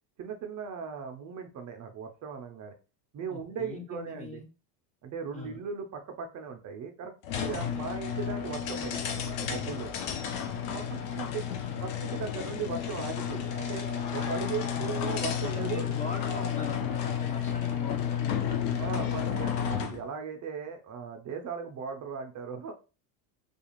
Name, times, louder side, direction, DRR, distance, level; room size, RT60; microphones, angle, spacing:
voice 1, 0.2-2.7 3.1-4.4 5.0-7.1 7.4-9.9 10.7-11.5 11.8-13.9 14.1-15.9 18.8-22.7, right 6 dB, 40° right, 5 dB, 0.4 m, -38 dB
voice 2, 3.3-4.5 5.3-5.6 7.5-7.9 11.4-11.9 14.2-15.0 15.4-19.0, left 4 dB, 15° left, 1 dB, 0.5 m, -42 dB
sound 1, 7.2-20.0, left 8 dB, 80° left, 0.7 m, -32 dB
2.4 x 2.4 x 2.9 m, 0.32 s
supercardioid pair, 95°, 50 cm